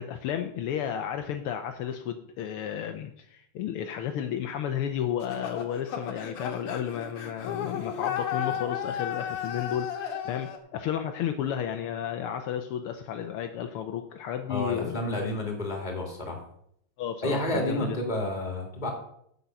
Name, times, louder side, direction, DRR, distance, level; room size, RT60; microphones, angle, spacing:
voice 1, 0.0-15.2 17.0-18.0, left 9 dB, 80° left, 7 dB, 1.2 m, -32 dB
sound 1, 5.2-10.6, left 9 dB, 55° left, 2.0 m, -34 dB
voice 2, 14.5-16.4 17.2-18.9, left 1 dB, 15° left, 2 dB, 2.3 m, -30 dB
8.1 x 7.6 x 6.9 m, 0.70 s
omnidirectional pair, 3.3 m